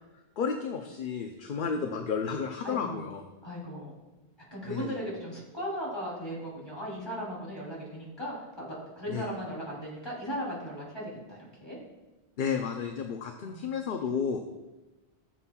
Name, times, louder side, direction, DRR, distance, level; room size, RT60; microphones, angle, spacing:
voice 1, 0.4-3.2 4.7-5.0 9.1-9.2 12.4-14.4, left 6 dB, 60° left, 4 dB, 0.7 m, -32 dB
voice 2, 2.6-3.0 3.4-4.0 4.5-11.8 13.4-13.8, equal, 25° left, -5 dB, 3.2 m, -37 dB
15.0 x 7.2 x 2.3 m, 1.1 s
omnidirectional pair, 1.1 m